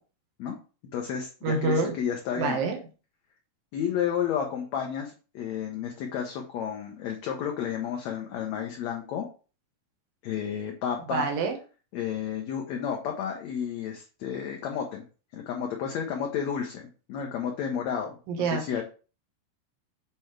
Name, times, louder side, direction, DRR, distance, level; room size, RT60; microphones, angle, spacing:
voice 1, 0.9-2.6 3.7-9.3 10.2-11.3 11.9-15.0 15.3-16.8 17.1-18.8, left 8 dB, 70° left, 1 dB, 1.7 m, -31 dB
voice 2, 1.4-2.0 2.4-2.8 11.1-11.6 18.3-18.6, right 4 dB, 85° right, 3 dB, 2.9 m, -26 dB
7.6 x 4.4 x 3.2 m, 0.35 s
omnidirectional pair, 4.0 m